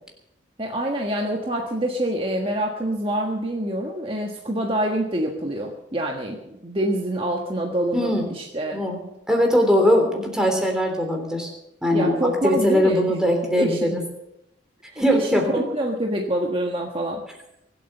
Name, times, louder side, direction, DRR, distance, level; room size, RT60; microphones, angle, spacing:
voice 1, 0.6-8.8 11.9-13.0 13.6-14.0 14.9-17.2, right 1 dB, 30° right, 0 dB, 1.5 m, -26 dB
voice 2, 7.9-8.2 8.7-9.0 9.3-11.5 11.8-14.0 15.0-15.6, equal, 5° right, 2 dB, 3.4 m, -21 dB
23.5 x 8.5 x 6.7 m, 0.83 s
head